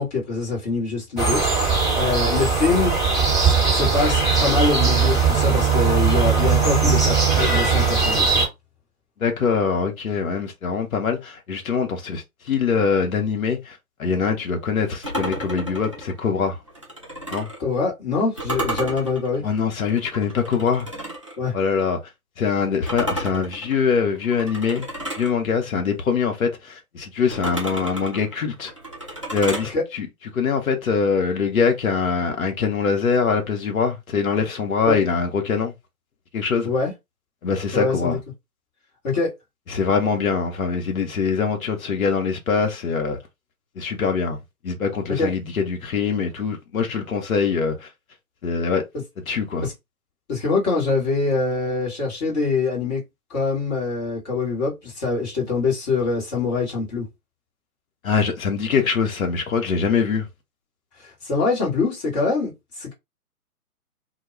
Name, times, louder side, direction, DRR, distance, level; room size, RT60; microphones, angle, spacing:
voice 1, 0.0-1.4 1.9-2.9 3.4-8.4 17.6-19.4 21.4-21.5 29.7-29.8 34.9-35.0 36.6-36.9 37.7-38.2 39.0-39.3 45.2-45.3 49.6-49.7 50.3-53.0 53.3-57.1 61.0-62.9, left 4 dB, 25° left, 1.1 m, -24 dB
sound 1, 1.2-8.5, right 5 dB, ahead, 1.1 m, -19 dB
voice 2, 9.2-16.6 17.3-17.5 19.4-20.9 21.5-22.0 22.4-24.9 25.2-28.7 29.3-30.1 30.3-35.7 36.3-36.7 37.4-38.2 39.7-43.2 43.8-47.9 48.4-48.8 49.3-49.7 58.0-60.3, left 5 dB, 65° left, 0.8 m, -23 dB
sound 2, 15.0-17.6 18.4-21.4 22.9-25.3 27.3-29.7, right 1 dB, 25° right, 0.4 m, -32 dB
2.2 x 2.2 x 3.0 m
figure-of-eight pair, 135°, 45 cm